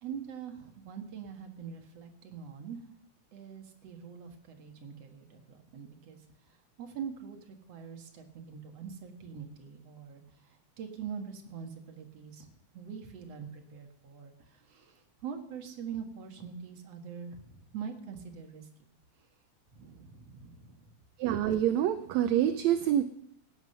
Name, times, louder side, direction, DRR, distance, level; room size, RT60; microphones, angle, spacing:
voice 1, 0.0-2.8 3.3-6.2 6.8-18.7 19.7-20.9, right 7 dB, 60° right, 4 dB, 2.6 m, -44 dB
voice 2, 21.2-23.0, right 11 dB, 75° right, 10 dB, 1.8 m, -26 dB
16.5 x 9.5 x 5.6 m, 0.74 s
omnidirectional pair, 3.4 m